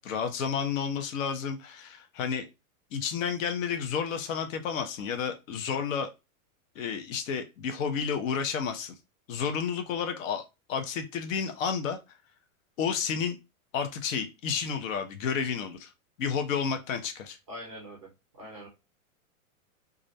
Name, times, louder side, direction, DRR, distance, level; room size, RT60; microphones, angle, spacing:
voice 1, 0.0-2.5 2.9-6.1 6.8-8.9 9.3-10.4 10.7-12.0 12.8-13.4 13.7-15.9 16.2-17.4, left 6 dB, 65° left, 7 dB, 0.6 m, -31 dB
voice 2, 17.5-18.1 18.4-18.7, equal, 25° right, -3 dB, 0.4 m, -43 dB
2.4 x 2.0 x 2.6 m, 0.25 s
supercardioid pair, 170°, 43 cm